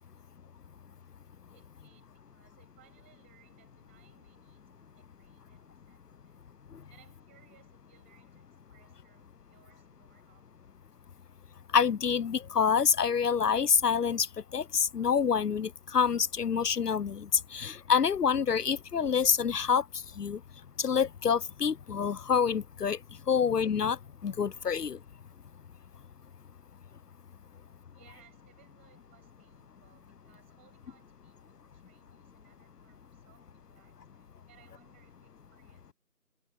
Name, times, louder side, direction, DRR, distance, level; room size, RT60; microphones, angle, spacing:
voice 1, 1.5-6.4 6.9-10.8 14.9-15.0 27.9-35.9, right 15 dB, 10° right, 7.8 m, -65 dB
voice 2, 11.7-14.3 14.5-19.8 20.2-20.4 20.8-23.0 23.3-24.0 24.2-25.0, left 6 dB, 85° left, 0.7 m, -27 dB
figure-of-eight pair, 170°, 46 cm